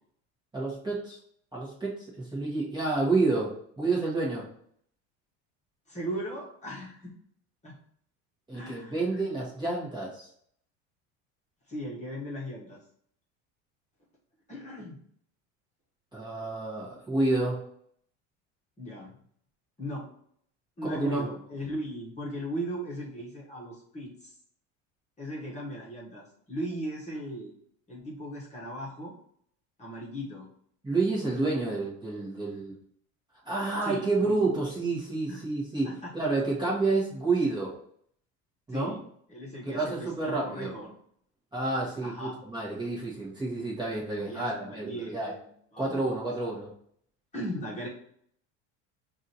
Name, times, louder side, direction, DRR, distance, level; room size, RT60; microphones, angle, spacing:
voice 1, 0.5-1.2 1.5-4.4 8.5-10.3 16.1-17.6 20.8-21.3 30.8-32.7 33.4-37.8 38.7-38.9 39.6-40.7 41.5-45.3 45.8-46.7, right 3 dB, 10° right, -6 dB, 1.3 m, -29 dB
voice 2, 5.9-7.1 7.6-7.8 8.5-9.3 11.7-12.8 14.5-15.0 18.8-19.2 19.8-20.1 20.8-24.4 25.2-27.5 27.9-29.1 29.8-30.5 33.8-34.4 35.3-35.4 35.8-36.1 38.7-39.0 39.3-40.9 42.0-42.4 44.2-46.1 47.3-47.9, equal, 20° left, -5 dB, 1.3 m, -38 dB
4.9 x 2.7 x 2.9 m, 0.65 s
supercardioid pair, 110°, 35 cm